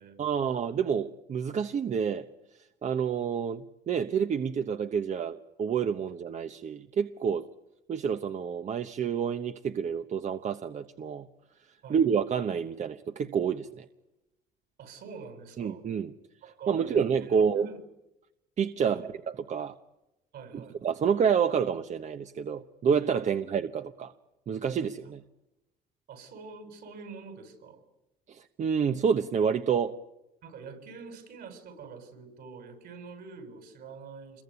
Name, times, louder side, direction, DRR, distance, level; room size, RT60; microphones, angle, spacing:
voice 1, 0.2-2.3 2.8-7.5 7.9-11.3 11.9-13.9 15.6-16.1 16.7-17.7 18.6-19.7 20.5-24.1 24.5-25.2 28.3-30.0, right 7 dB, 45° right, 9 dB, 1.1 m, -28 dB
voice 2, 14.8-15.8 16.4-17.8 18.8-19.0 20.3-20.8 26.1-27.8 30.4-34.4, right 5 dB, 70° right, 8 dB, 6.8 m, -46 dB
27.5 x 22.0 x 9.8 m, 0.94 s
cardioid pair, 110°, 17 cm